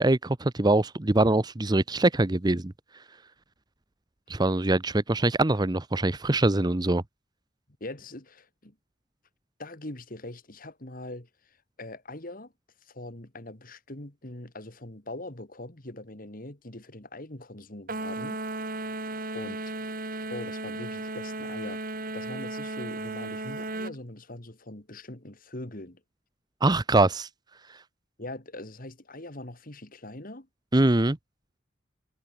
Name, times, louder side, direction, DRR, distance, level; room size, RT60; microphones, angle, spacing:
voice 1, 0.0-2.7 4.3-7.0 26.6-27.3 30.7-31.2, right 2 dB, 20° right, 0.7 m, -23 dB
voice 2, 7.8-8.8 9.6-12.5 12.8-18.4 19.3-19.6 20.3-21.8 22.1-26.0 28.2-30.5, left 1 dB, 45° left, 2.5 m, -42 dB
sound 1, 17.9-24.0, right 2 dB, 45° right, 4.4 m, -35 dB
head